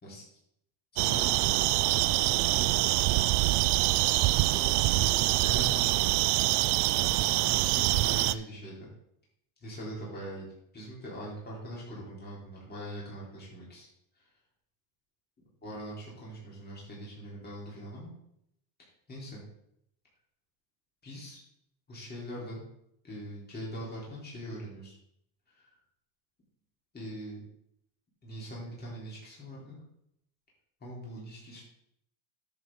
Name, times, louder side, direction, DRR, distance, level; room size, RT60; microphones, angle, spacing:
voice 1, 0.9-2.8 3.8-3.9 4.5-6.1 6.9-8.9 9.6-10.5 10.7-13.9 14.2-14.3 15.6-18.1 19.1-19.4 21.0-21.4 21.9-22.6 23.0-25.0 25.5-25.8 26.9-27.4 28.2-29.8 30.8-31.6, right 1 dB, 20° left, -6 dB, 3.7 m, -42 dB
sound 1, 1.0-8.3, right 18 dB, 60° right, 0.5 m, -25 dB
10.5 x 7.1 x 3.8 m, 0.76 s
cardioid pair, 125°, 48 cm